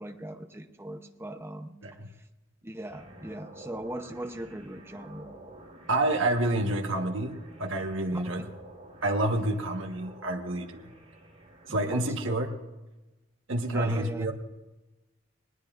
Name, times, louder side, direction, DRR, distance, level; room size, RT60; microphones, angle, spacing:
voice 1, 0.0-1.7 2.6-5.3 8.1-8.5 11.8-12.4 13.7-14.3, right 1 dB, 10° right, 6 dB, 0.7 m, -39 dB
sound 1, 2.9-12.1, right 1 dB, 30° right, 4.1 m, -50 dB
voice 2, 5.9-8.4 9.0-10.9 11.7-12.5 13.5-14.3, right 1 dB, 65° right, 3 dB, 1.3 m, -28 dB
19.5 x 19.5 x 2.5 m, 1.1 s
head